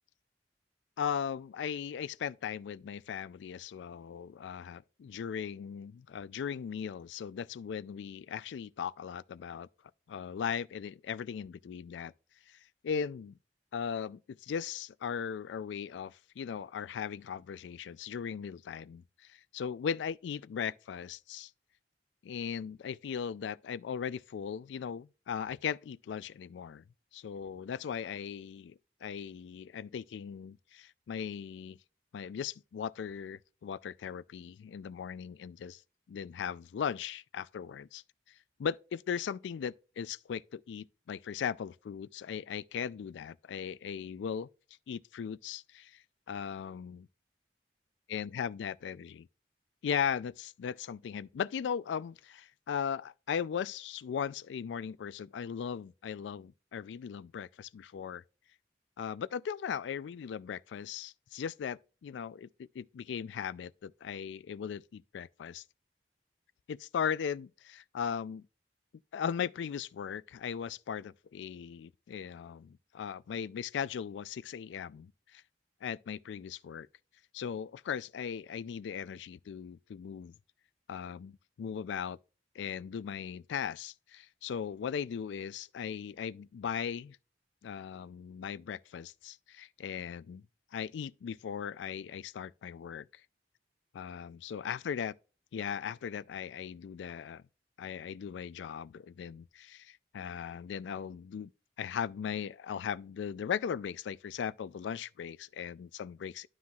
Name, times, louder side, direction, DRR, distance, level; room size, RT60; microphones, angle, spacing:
voice 1, 1.0-9.7 10.1-12.1 12.5-12.6 12.8-13.4 13.7-21.5 22.2-26.8 27.1-28.7 29.0-31.8 32.1-35.8 36.1-38.0 38.6-44.5 44.9-46.0 46.3-47.1 48.1-49.3 49.8-58.2 59.0-62.5 62.7-65.6 66.7-68.5 69.1-75.4 75.8-76.9 77.3-80.3 80.9-82.2 82.6-87.2 87.6-90.4 90.7-93.1 93.9-95.2 95.5-97.4 97.8-101.5 101.8-106.5, left 7 dB, 85° left, 0.3 m, -38 dB
12.0 x 5.6 x 2.3 m
head